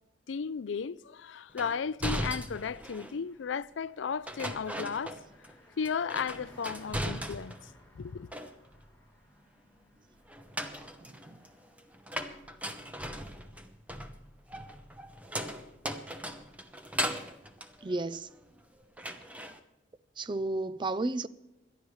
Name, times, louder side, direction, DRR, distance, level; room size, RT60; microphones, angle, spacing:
voice 1, 0.3-5.2 5.8-7.7 7.9-8.3, left 6 dB, 85° left, 0.4 m, -35 dB
sound 1, 1.6-3.2 4.3-5.6 5.8-7.7 8.1-8.9 10.3-18.6 19.0-19.6, equal, 10° right, 0.9 m, -38 dB
Car passing by, 3.0-14.9 15.1-15.2, equal, 10° left, 6.6 m, -61 dB
voice 2, 11.0-11.4 17.8-18.3 19.0-19.1 20.2-21.3, right 2 dB, 25° right, 0.4 m, -33 dB
28.0 x 12.0 x 3.2 m
head